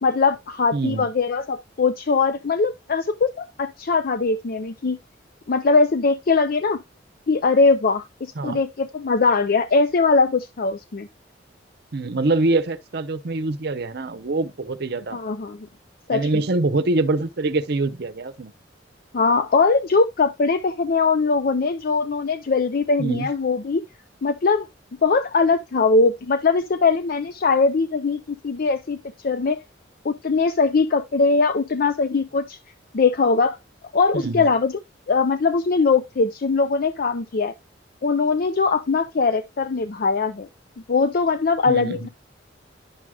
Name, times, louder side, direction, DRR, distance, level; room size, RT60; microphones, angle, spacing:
voice 1, 0.0-5.0 5.5-6.8 7.3-11.1 15.1-15.7 16.1-16.4 19.1-23.8 24.2-24.7 25.0-29.0 29.2-29.6 30.0-32.6 32.9-33.6 33.9-34.7 35.1-37.5 38.0-40.5 40.9-42.1, left 4 dB, 50° left, 0.5 m, -21 dB
voice 2, 0.7-1.1 8.4-8.6 11.9-15.2 16.1-18.5 23.0-23.3 34.1-34.5 41.7-42.0, right 2 dB, 60° right, 0.7 m, -24 dB
10.5 x 6.2 x 2.3 m
head